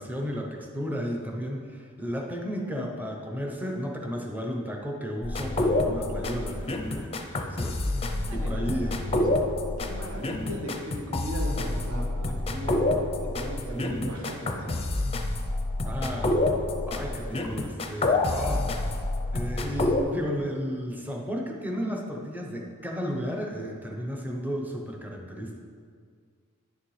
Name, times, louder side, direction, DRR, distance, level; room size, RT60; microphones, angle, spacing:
voice 1, 0.0-7.8 8.1-9.0 15.8-16.3 16.9-19.0 19.3-25.6, equal, 10° right, 0 dB, 0.8 m, -33 dB
sound 1, 5.2-20.0, left 2 dB, 25° left, 0.5 m, -28 dB
voice 2, 8.0-9.3 9.8-12.8 13.2-14.8, equal, 65° right, 0 dB, 1.3 m, -37 dB
10.0 x 6.5 x 3.2 m, 2.1 s
head